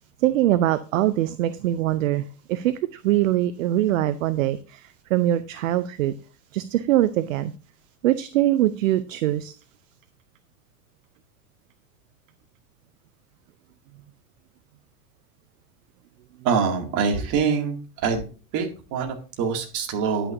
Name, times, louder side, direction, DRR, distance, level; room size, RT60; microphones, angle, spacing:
voice 1, 0.2-6.1 6.5-7.5 8.0-9.6, right 14 dB, 55° right, 14 dB, 0.7 m, -23 dB
voice 2, 16.4-17.8 18.0-18.2 18.5-20.3, right 6 dB, 40° right, 3 dB, 2.4 m, -24 dB
10.0 x 9.0 x 2.6 m, 0.36 s
figure-of-eight pair, 85°, 47 cm